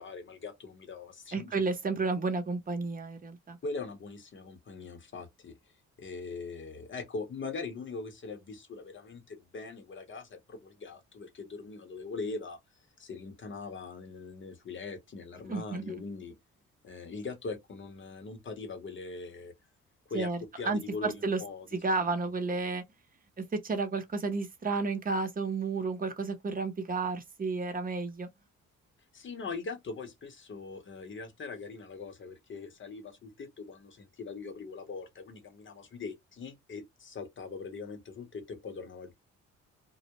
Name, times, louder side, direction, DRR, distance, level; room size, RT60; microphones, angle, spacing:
voice 1, 0.0-1.6 3.6-5.6 6.0-12.6 13.0-16.3 16.8-19.5 20.1-20.3 20.6-21.7 29.1-39.1, left 4 dB, 40° left, 0.9 m, -41 dB
voice 2, 1.3-3.6 15.5-15.9 20.1-20.4 20.6-21.4 21.8-22.8 23.4-28.3, right 3 dB, 30° right, 0.8 m, -32 dB
2.3 x 2.1 x 2.9 m
cardioid pair, 90°, 30 cm